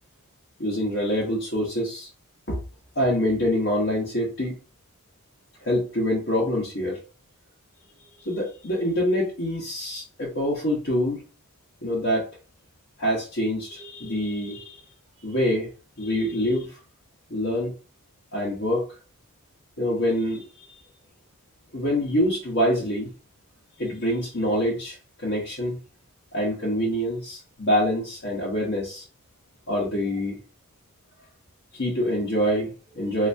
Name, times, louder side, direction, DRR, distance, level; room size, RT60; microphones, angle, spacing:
voice 1, 0.6-2.1 2.5-2.6 2.9-4.6 5.6-7.0 8.2-11.2 11.8-12.3 13.0-14.8 15.2-15.7 16.0-16.7 17.3-17.7 18.3-18.9 19.8-20.4 21.7-23.1 23.8-25.8 26.3-29.0 29.7-30.4 31.7-33.3, equal, 55° left, -6 dB, 1.1 m, -25 dB
3.4 x 2.8 x 2.7 m, 0.35 s
head